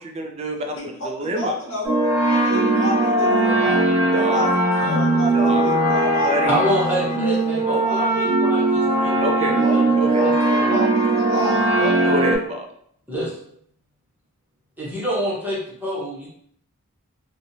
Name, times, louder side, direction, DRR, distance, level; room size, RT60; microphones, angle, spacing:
voice 1, 0.0-0.8 1.0-1.5 4.1-4.5 5.3-5.6 6.2-6.6 9.2-10.3 12.0-12.7, right 1 dB, 30° right, 3 dB, 0.3 m, -26 dB
voice 2, 0.5-1.9 2.2-8.0 9.5-12.1, equal, 70° left, -4 dB, 1.0 m, -31 dB
sound 1, 1.8-12.4, right 2 dB, 55° right, 0.8 m, -19 dB
voice 3, 6.5-10.3 10.7-10.9 13.1-13.4 14.8-16.3, right 1 dB, 10° right, -6 dB, 0.7 m, -27 dB
2.9 x 2.1 x 2.5 m, 0.67 s
head